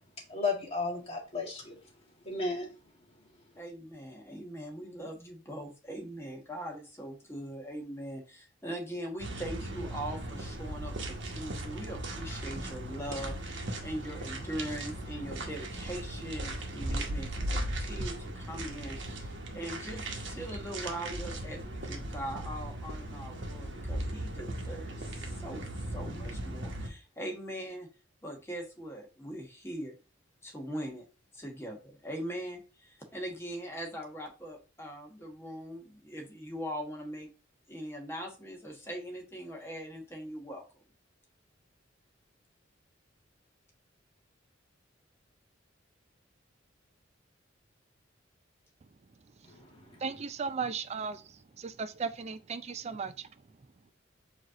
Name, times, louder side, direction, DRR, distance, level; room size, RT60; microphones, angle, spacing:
voice 1, 0.3-1.8 2.2-2.7 49.4-50.0, left 3 dB, 30° left, 1.7 m, -34 dB
voice 2, 3.6-27.9 28.2-29.9 30.4-31.0 31.3-37.3 37.7-40.8, right 1 dB, 15° left, 1.1 m, -41 dB
sound 1, 9.2-26.9, right 1 dB, 65° right, 1.0 m, -38 dB
voice 3, 50.0-53.3, right 5 dB, 35° right, 0.4 m, -36 dB
4.8 x 2.9 x 3.7 m
head